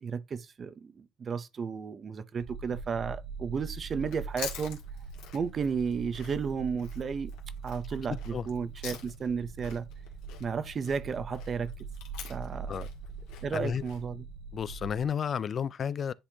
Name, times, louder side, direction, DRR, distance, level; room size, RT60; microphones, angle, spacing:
voice 1, 0.0-4.8 5.3-7.3 7.6-9.9 10.4-11.7 12.3-12.7 13.4-14.2, right 6 dB, 35° right, 0.7 m, -33 dB
sound 1, 2.4-15.1, right 5 dB, 60° right, 1.5 m, -42 dB
Chewing mastication, 4.0-9.4 9.6-14.0, left 9 dB, 85° left, 1.8 m, -46 dB
voice 2, 8.1-8.5 12.7-12.9 13.5-13.8 14.5-16.1, left 7 dB, 40° left, 0.3 m, -32 dB
9.9 x 4.2 x 2.8 m
cardioid pair, 110°, 0 cm